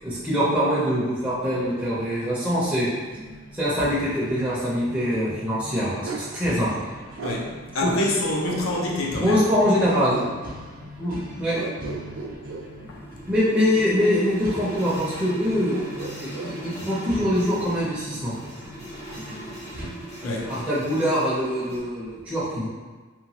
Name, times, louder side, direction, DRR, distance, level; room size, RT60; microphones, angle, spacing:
voice 1, 0.0-2.9 3.5-6.8 7.8-7.9 9.1-10.2 11.0-11.6 13.3-15.7 16.2-18.3 20.2-22.7, equal, 5° right, -10 dB, 0.5 m, -24 dB
sound 1, 1.5-19.9, equal, 45° right, 0.6 m, -41 dB
Bark, 6.0-6.3 7.2-7.4 8.4-9.2 9.8-10.4 11.5-12.7 14.0-14.9 15.7-16.6, right 3 dB, 80° right, 0.3 m, -34 dB
voice 2, 7.2-9.4 12.9-13.0 20.2-20.5, left 2 dB, 75° left, -2 dB, 0.5 m, -27 dB
sound 2, 12.4-21.8, right 1 dB, 60° left, 1.1 m, -40 dB
2.9 x 2.2 x 2.8 m, 1.4 s
head